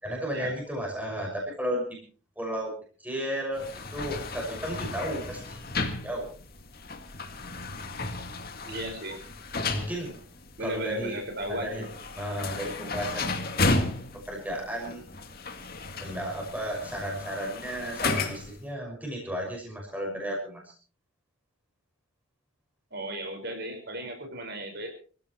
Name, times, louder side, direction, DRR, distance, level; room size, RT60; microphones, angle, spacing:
voice 1, 0.0-2.0 2.4-2.7 3.0-3.6 3.9-5.6 6.0-6.3 9.6-10.1 10.6-11.2 11.5-11.9 12.1-13.3 14.1-15.0 16.0-20.7, equal, 10° right, -1 dB, 6.0 m, -33 dB
sound 1, 3.5-18.6, left 3 dB, 50° left, 2.1 m, -34 dB
voice 2, 8.6-9.2 10.6-11.9 22.9-24.9, right 1 dB, 55° right, 5 dB, 5.3 m, -35 dB
25.5 x 15.5 x 3.1 m, 0.39 s
head